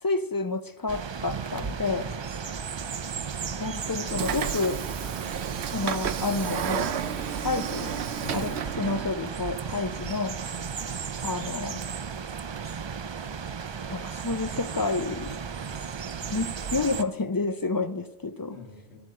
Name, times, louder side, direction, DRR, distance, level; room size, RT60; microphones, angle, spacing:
voice 1, 0.0-2.1 3.6-4.8 5.7-7.0 7.4-7.9 8.3-10.4 11.2-11.8 13.9-15.4 16.3-18.6, left 3 dB, 25° left, 11 dB, 0.5 m, -29 dB
sound 1, 0.9-17.0, right 6 dB, 50° right, 0.3 m, -35 dB
voice 2, 1.5-2.6 8.2-8.6 18.5-19.0, left 4 dB, 85° left, 1 dB, 1.9 m, -44 dB
Train / Sliding door, 4.1-9.2, right 8 dB, 85° right, 0.9 m, -32 dB
12.0 x 8.4 x 7.6 m, 1.0 s
omnidirectional pair, 1.1 m